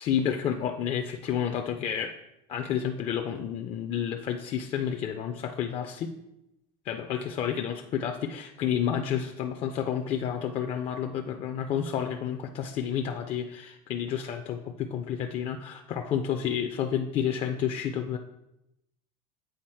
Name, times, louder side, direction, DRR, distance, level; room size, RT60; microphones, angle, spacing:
voice 1, 0.0-2.1 2.5-6.1 6.8-18.2, left 8 dB, 30° left, 5 dB, 0.4 m, -30 dB
7.8 x 4.0 x 4.3 m, 0.87 s
cardioid pair, 155°, 18 cm